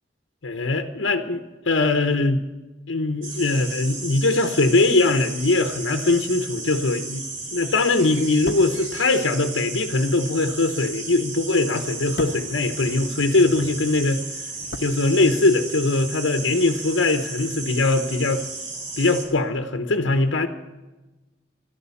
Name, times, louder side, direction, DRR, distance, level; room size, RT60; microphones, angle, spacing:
voice 1, 0.4-2.5 2.9-7.3 7.5-14.2 14.8-18.4 19.0-20.5, left 2 dB, 90° left, 7 dB, 1.0 m, -21 dB
sound 1, 3.2-19.3, right 3 dB, 90° right, 4.2 m, -34 dB
sound 2, 8.3-13.6 13.8-15.7 15.9-16.1, left 2 dB, 55° left, 0.9 m, -39 dB
13.0 x 11.5 x 8.4 m, 1.1 s
head